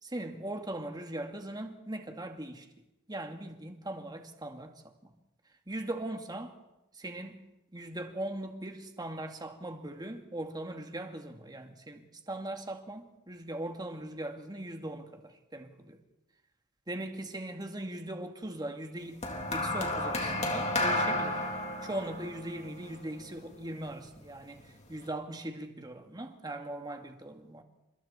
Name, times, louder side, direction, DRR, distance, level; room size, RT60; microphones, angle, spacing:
voice 1, 0.0-2.7 3.1-5.1 5.7-6.6 6.9-7.4 7.7-16.0 16.9-21.4 21.8-27.6, right 1 dB, 20° right, 2.2 m, -40 dB
sound 1, 19.2-23.7 24.6-24.8, left 1 dB, 30° left, 3.5 m, -32 dB
30.0 x 27.5 x 4.4 m
head